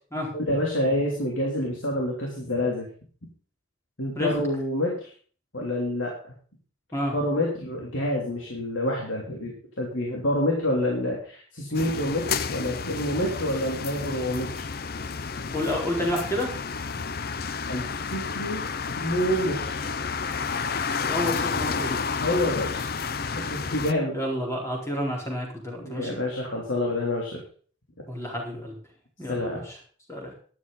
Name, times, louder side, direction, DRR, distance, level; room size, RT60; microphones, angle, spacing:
voice 1, 0.3-2.9 4.0-5.1 5.5-6.1 7.1-14.5 17.7-17.8 18.1-18.6 18.9-19.8 22.2-22.9 23.2-24.1 25.8-27.4 29.3-29.6, left 1 dB, 75° left, -1 dB, 3.4 m, -27 dB
sound 1, 11.7-23.9, left 5 dB, 50° left, 0.6 m, -31 dB
voice 2, 15.5-16.5 21.0-22.0 24.1-26.2 28.1-28.7 29.2-29.8 30.1-30.3, left 1 dB, 15° left, -1 dB, 4.3 m, -30 dB
13.0 x 11.5 x 4.1 m, 0.42 s
head